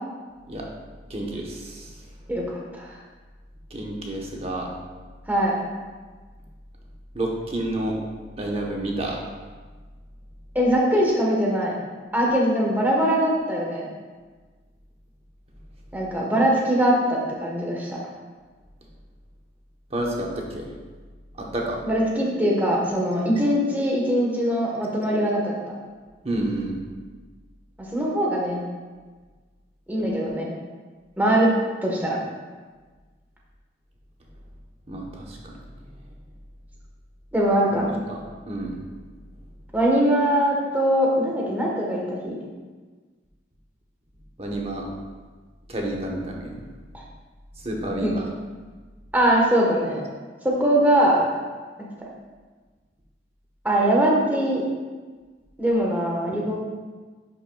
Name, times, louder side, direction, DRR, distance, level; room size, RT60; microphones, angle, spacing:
voice 1, 1.1-2.1 3.7-4.7 7.1-8.0 8.4-9.3 19.9-20.7 21.3-21.8 26.2-26.8 34.9-35.9 37.7-38.8 44.4-44.9 45.7-46.6 47.6-48.3, right 1 dB, 35° right, -1 dB, 1.0 m, -30 dB
voice 2, 10.5-11.7 12.1-13.8 15.9-18.0 21.9-25.5 27.8-28.6 29.9-30.5 31.2-31.5 31.8-32.2 37.3-37.8 39.7-42.3 48.0-48.1 49.1-50.0 50.4-51.3 53.6-54.6 55.6-56.6, right 1 dB, 10° right, -3 dB, 1.2 m, -21 dB
10.5 x 5.6 x 2.3 m, 1.4 s
head